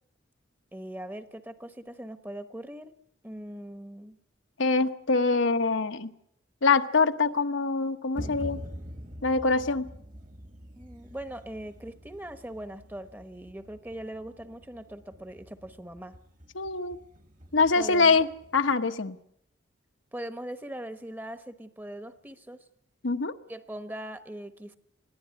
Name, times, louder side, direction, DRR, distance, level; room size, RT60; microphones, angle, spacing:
voice 1, 0.7-2.9 3.2-4.2 10.8-16.1 17.8-18.2 20.1-22.6 23.5-24.8, right 1 dB, 10° right, 10 dB, 1.0 m, -40 dB
voice 2, 4.6-6.1 6.6-8.6 9.2-9.9 16.5-17.0 17.5-19.2 23.0-23.3, left 4 dB, 80° left, 8 dB, 1.1 m, -24 dB
sound 1, 8.1-18.7, equal, 40° right, 1.6 m, -45 dB
21.5 x 15.0 x 9.5 m, 0.72 s
head